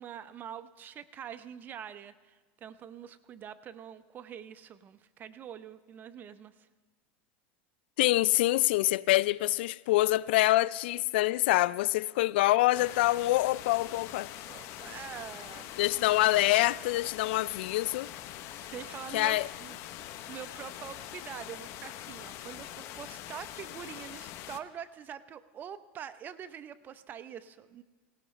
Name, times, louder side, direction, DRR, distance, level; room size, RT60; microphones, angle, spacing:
voice 1, 0.0-6.5 14.5-15.8 18.7-19.8 20.3-27.8, right 9 dB, 35° right, 0.7 m, -44 dB
voice 2, 8.0-14.3 15.8-18.1 19.1-19.5, left 17 dB, 80° left, 0.3 m, -26 dB
sound 1, 12.7-24.6, left 12 dB, 55° left, 0.8 m, -44 dB
19.0 x 17.5 x 3.2 m
supercardioid pair, 120°, 6 cm